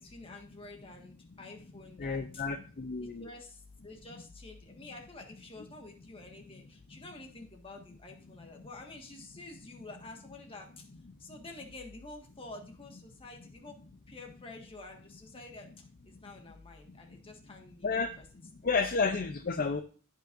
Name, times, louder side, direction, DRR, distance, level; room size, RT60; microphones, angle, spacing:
voice 1, 0.0-2.4 3.0-10.8 11.2-13.8 14.1-15.7 16.0-17.9 18.2-18.3 18.6-18.7, left 2 dB, 25° left, 1 dB, 1.5 m, -49 dB
voice 2, 2.0-3.3 8.6-8.7 17.8-18.2 18.6-19.8, left 4 dB, 40° left, 7 dB, 0.5 m, -31 dB
15.0 x 5.5 x 2.5 m, 0.40 s
head